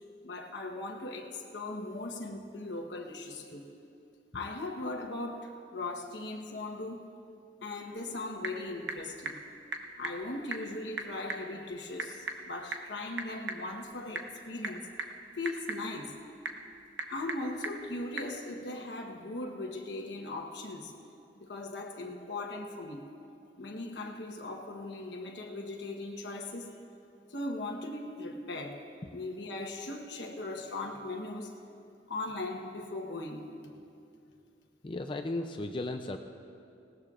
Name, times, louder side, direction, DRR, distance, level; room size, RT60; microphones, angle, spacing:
voice 1, 0.2-3.7 4.3-7.1 7.6-9.4 10.0-14.9 15.4-16.2 17.1-20.9 21.4-23.1 23.6-26.7 27.3-28.8 29.1-31.5 32.1-33.5, left 2 dB, 90° left, 1 dB, 1.1 m, -39 dB
Typing / Telephone, 7.9-18.4, right 3 dB, 80° right, 0.9 m, -42 dB
voice 2, 34.8-36.2, left 2 dB, 30° left, 5 dB, 0.4 m, -35 dB
19.5 x 17.5 x 2.5 m, 2.5 s
head